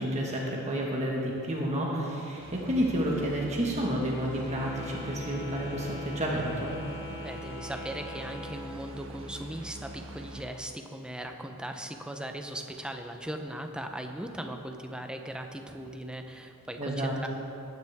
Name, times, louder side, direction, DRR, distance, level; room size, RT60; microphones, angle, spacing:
voice 1, 0.0-6.7 16.8-17.1, equal, 30° right, -3 dB, 1.6 m, -30 dB
sound 1, 2.4-10.5, right 1 dB, 60° right, 1.4 m, -44 dB
Wind instrument woodwind instrument, 4.3-9.0, left 2 dB, 30° left, 1.7 m, -42 dB
voice 2, 7.2-17.3, right 1 dB, 5° right, 4 dB, 0.8 m, -38 dB
20.5 x 9.5 x 3.6 m, 2.8 s
head